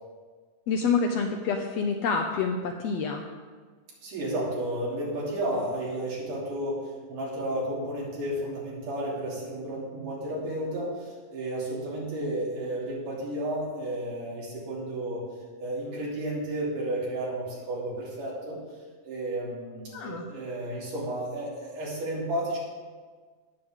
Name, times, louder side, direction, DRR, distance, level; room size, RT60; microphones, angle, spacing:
voice 1, 0.7-3.2 19.9-20.2, left 5 dB, 80° left, 4 dB, 1.5 m, -27 dB
voice 2, 4.0-15.3 15.6-18.6 19.0-22.6, right 1 dB, 85° right, -5 dB, 4.4 m, -32 dB
18.0 x 7.2 x 3.6 m, 1.5 s
omnidirectional pair, 3.6 m